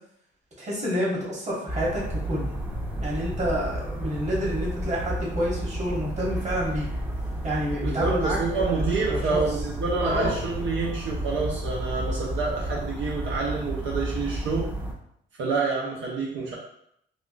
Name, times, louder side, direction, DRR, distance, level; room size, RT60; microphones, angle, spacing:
voice 1, 0.6-2.5 3.0-6.9 7.4-8.8 9.1-9.4 10.0-10.4, equal, 35° right, -4 dB, 1.3 m, -28 dB
sound 1, 1.7-14.9, right 1 dB, 10° right, 0.6 m, -31 dB
voice 2, 7.8-14.7 15.4-16.6, right 4 dB, 75° right, -4 dB, 0.7 m, -28 dB
3.4 x 2.5 x 2.4 m, 0.72 s
cardioid pair, 90°, 20 cm